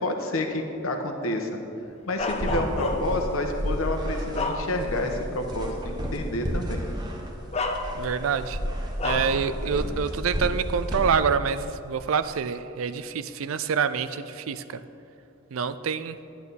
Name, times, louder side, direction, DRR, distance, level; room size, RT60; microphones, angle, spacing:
voice 1, 0.0-1.5 2.1-6.9, left 1 dB, 75° left, 4 dB, 1.2 m, -29 dB
Bark, 2.2-3.3 3.8-5.1 5.5-5.7 6.8-7.0 7.5-8.3 9.0-9.4, left 3 dB, 30° left, 0.7 m, -30 dB
sound 1, 2.2-11.3, equal, 20° right, 1.1 m, -32 dB
voice 2, 7.9-8.6 9.0-14.8 15.5-16.2, right 6 dB, 75° right, 13 dB, 0.4 m, -27 dB
10.5 x 10.5 x 4.2 m, 2.7 s
head